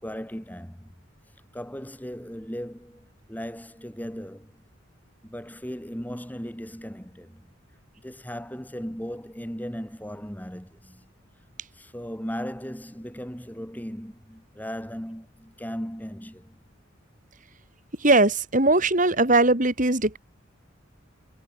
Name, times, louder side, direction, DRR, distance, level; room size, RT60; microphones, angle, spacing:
voice 1, 0.0-0.9 1.5-4.6 5.2-7.5 8.0-11.1 11.7-16.6, equal, 10° left, 5.5 m, -37 dB
voice 2, 18.0-20.2, right 2 dB, 40° right, 3.5 m, -20 dB
head